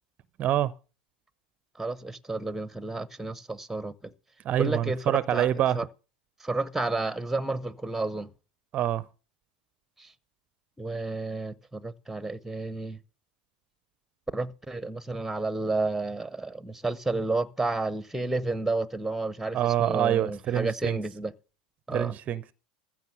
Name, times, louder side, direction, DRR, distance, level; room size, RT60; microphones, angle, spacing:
voice 1, 0.4-0.7 4.4-5.8 8.7-9.0 19.5-21.0 21.9-22.5, right 11 dB, 35° right, 0.5 m, -26 dB
voice 2, 1.8-4.1 4.6-5.9 6.4-8.3 10.0-10.1 10.8-13.0 14.3-21.3 21.9-22.2, right 2 dB, 5° right, 0.8 m, -31 dB
15.0 x 6.0 x 7.6 m
figure-of-eight pair, 85°, 5 cm